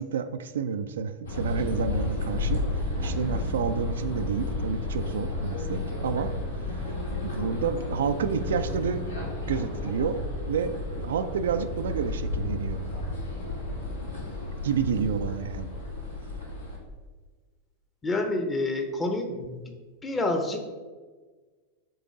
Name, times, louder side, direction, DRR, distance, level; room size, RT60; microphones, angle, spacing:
voice 1, 0.0-2.6 3.0-6.3 7.2-9.0 9.5-12.8 14.6-15.7, right 6 dB, 60° right, 9 dB, 0.3 m, -29 dB
sound 1, 1.2-16.8, left 2 dB, 70° left, 1.4 m, -32 dB
voice 2, 18.0-19.7 20.0-20.6, left 2 dB, 15° left, 4 dB, 0.8 m, -28 dB
6.8 x 3.8 x 3.7 m, 1.4 s
figure-of-eight pair, 90°, 0 cm